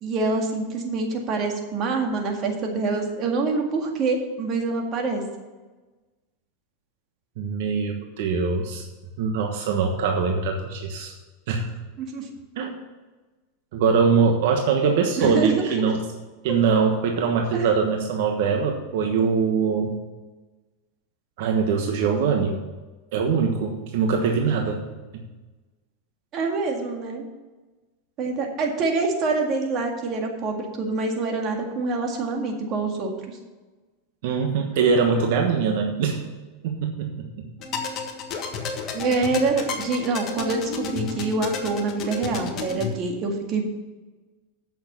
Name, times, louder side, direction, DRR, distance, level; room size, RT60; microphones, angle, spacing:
voice 1, 0.0-5.2 12.0-12.3 15.2-15.8 16.5-16.6 17.5-17.7 26.3-27.3 28.2-33.4 38.9-43.6, right 3 dB, 35° right, 2 dB, 1.9 m, -26 dB
voice 2, 7.4-8.8 9.2-11.1 11.5-11.7 12.6-12.7 13.7-16.0 16.4-20.0 21.4-22.6 23.1-24.8 34.2-36.2 36.6-37.5, right 5 dB, 65° right, 3 dB, 1.2 m, -23 dB
sound 1, 37.6-42.9, left 5 dB, 35° left, 1.5 m, -32 dB
8.5 x 6.6 x 6.7 m, 1.2 s
supercardioid pair, 135°, 0 cm